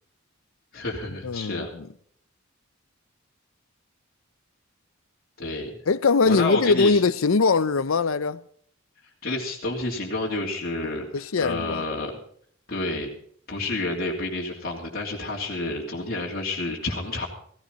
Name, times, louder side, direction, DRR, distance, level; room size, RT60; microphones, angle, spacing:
voice 1, 0.7-1.7 5.4-5.8 6.3-7.0 9.2-12.1 12.7-13.1 13.5-17.3, left 2 dB, 50° left, 3.0 m, -29 dB
voice 2, 1.2-1.9 5.9-8.4 10.8-11.8, left 4 dB, 85° left, 0.6 m, -22 dB
16.0 x 15.5 x 4.1 m
head